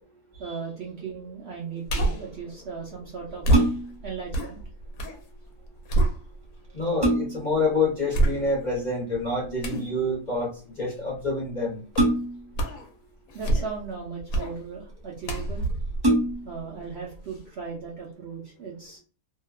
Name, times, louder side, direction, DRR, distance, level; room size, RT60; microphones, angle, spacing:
voice 1, 0.3-3.5 4.0-4.6 13.3-15.7 16.4-19.0, right 5 dB, 55° right, -3 dB, 0.8 m, -37 dB
sound 1, 1.9-2.3 3.4-5.2 5.6-6.7 7.2-7.3 8.1-8.8 9.6-9.9 11.9-12.2 12.5-12.9 13.3-13.9 14.3-14.6 15.2-16.9 17.3-17.4, right 2 dB, 70° left, 1.0 m, -26 dB
FX perc beer ring, 3.3-4.1 6.1-6.2 6.6-7.6 9.1-9.5 11.9-12.6 13.5-14.2 15.0-15.1 15.4-15.5 15.9-16.6 17.1-17.2, right 1 dB, 20° right, 0.7 m, -25 dB
voice 2, 6.7-11.8, left 2 dB, 35° left, -4 dB, 0.9 m, -27 dB
2.7 x 2.2 x 2.2 m, 0.38 s
omnidirectional pair, 1.6 m